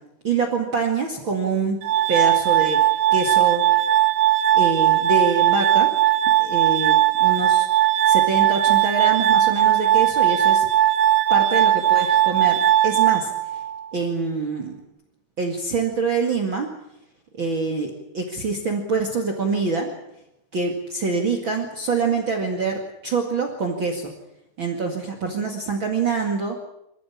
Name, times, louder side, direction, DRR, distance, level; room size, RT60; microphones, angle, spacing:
voice 1, 0.2-1.8 2.1-2.8 3.1-3.6 4.5-5.9 6.4-7.7 8.0-10.7 11.3-13.6 13.9-14.7 15.4-16.7 17.4-19.9 20.5-24.1 24.6-26.6, right 4 dB, 60° right, 2 dB, 1.2 m, -25 dB
Glass, 1.8-13.8, right 12 dB, 85° right, 4.8 m, -18 dB
26.5 x 14.5 x 8.7 m, 0.84 s
omnidirectional pair, 5.9 m